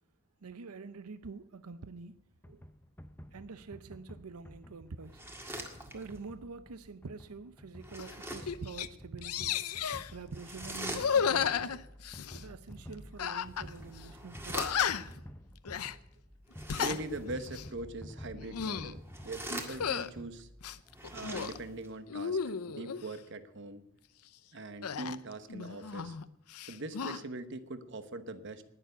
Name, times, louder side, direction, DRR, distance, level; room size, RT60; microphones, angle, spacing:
voice 1, 0.4-2.2 3.3-5.2 5.9-9.7 10.1-11.7 12.3-14.7, right 4 dB, 85° right, 0.7 m, -46 dB
sound 1, 2.4-20.8, equal, 10° left, 0.6 m, -51 dB
sound 2, 5.0-6.3 7.8-8.6 10.3-11.5 13.3-15.1 16.5-17.3 18.9-20.2 20.9-21.9, right 1 dB, 10° right, 1.9 m, -43 dB
sound 3, 8.0-8.1 8.5-8.9 9.2-10.1 10.9-12.4 13.2-13.7 14.0-14.1 14.5-15.2 15.7-16.0 16.5-17.0 17.4-17.7 18.3-18.9 19.7-20.1 20.6-21.6 22.1-23.0 24.8-26.2 26.5-27.2, left 7 dB, 85° left, 0.6 m, -33 dB
voice 2, 16.7-20.5 21.1-23.8 24.5-26.2 26.7-28.6, right 2 dB, 55° right, 1.1 m, -42 dB
19.5 x 6.9 x 8.0 m
head